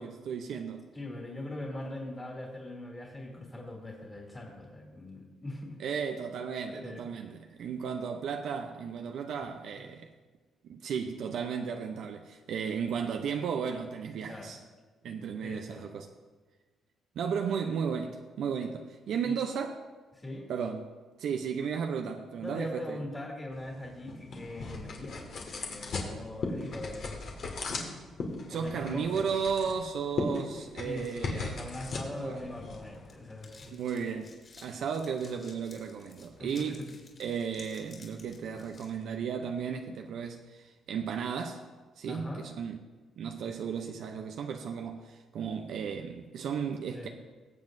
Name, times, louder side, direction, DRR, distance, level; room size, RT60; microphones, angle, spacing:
voice 1, 0.0-0.8 5.8-10.1 10.6-14.6 15.0-16.1 17.2-19.8 20.5-23.0 28.5-31.6 32.2-32.4 33.7-36.9 37.2-41.6 42.0-42.8 43.2-47.1, right 6 dB, 75° right, 0.6 m, -34 dB
voice 2, 0.9-5.8 6.7-7.0 14.3-14.5 15.4-15.9 19.2-19.4 20.2-20.4 22.4-27.2 28.5-29.3 30.8-33.8 36.4-36.9 42.1-42.5 46.9-47.1, left 1 dB, 25° left, 2.5 m, -41 dB
sound 1, 23.5-33.7, left 3 dB, 60° left, 1.8 m, -38 dB
sound 2, 32.3-38.9, left 4 dB, 45° left, 3.5 m, -55 dB
20.5 x 7.6 x 2.6 m
cardioid pair, 90°, 0 cm